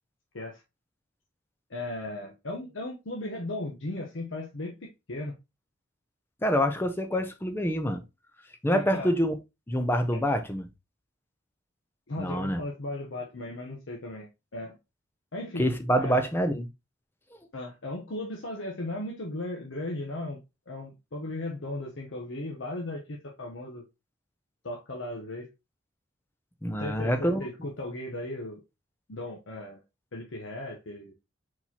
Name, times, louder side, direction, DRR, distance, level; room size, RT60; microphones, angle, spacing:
voice 1, 1.7-5.3 8.7-9.1 10.1-10.2 12.1-14.8 15.3-15.7 16.0-16.2 17.5-20.4 20.7-23.8 24.6-25.5 26.8-28.6 29.1-29.8 30.1-31.1, left 1 dB, 75° left, 0.9 m, -36 dB
voice 2, 6.4-8.0 8.6-9.3 9.7-10.7 12.2-12.6 15.6-16.7 26.6-27.4, equal, 10° left, 0.5 m, -26 dB
4.3 x 4.3 x 2.8 m
head